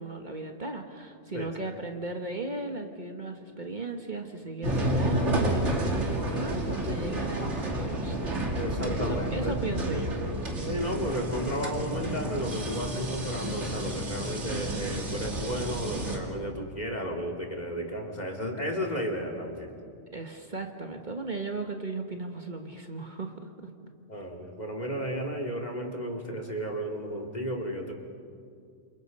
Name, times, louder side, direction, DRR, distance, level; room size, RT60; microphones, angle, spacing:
voice 1, 0.0-8.6 9.0-10.2 20.1-23.5, right 3 dB, 40° right, 4 dB, 1.5 m, -36 dB
voice 2, 1.3-1.7 8.6-9.6 10.7-19.7 24.1-27.9, equal, 35° left, 1 dB, 2.9 m, -33 dB
sound 1, 4.6-16.2, right 1 dB, 75° right, 2.8 m, -30 dB
28.5 x 27.5 x 5.4 m, 2.3 s
omnidirectional pair, 1.2 m